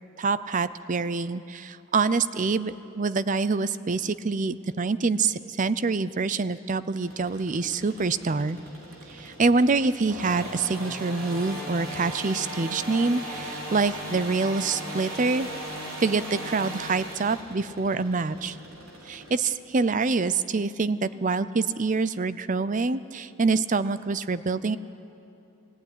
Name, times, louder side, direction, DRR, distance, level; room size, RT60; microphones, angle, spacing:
voice 1, 0.2-8.6 9.1-15.5 16.0-18.6 19.0-24.8, right 4 dB, 35° right, 15 dB, 0.5 m, -26 dB
sound 1, 7.0-19.3, right 1 dB, 85° right, 4.0 m, -38 dB
21.0 x 16.0 x 9.8 m, 2.9 s
head